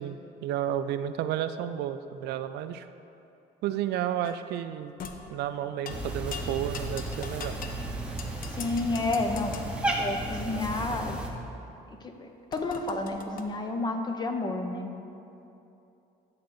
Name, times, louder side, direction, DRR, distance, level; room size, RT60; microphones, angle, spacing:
voice 1, 0.0-2.9 3.6-4.9 5.3-7.6, right 10 dB, 75° right, 11 dB, 0.4 m, -32 dB
sound 1, 4.2-4.5 5.0-5.2 5.9-6.0 6.3-7.8 8.2-9.7 12.5-13.4, left 6 dB, 55° left, 0.7 m, -41 dB
Cat, 5.9-11.3, right 1 dB, 5° right, 0.9 m, -34 dB
voice 2, 8.6-9.6 10.0-11.2 11.9-14.9, left 2 dB, 25° left, 5 dB, 0.8 m, -31 dB
10.5 x 3.8 x 7.0 m, 2.8 s
cardioid pair, 110°, 17 cm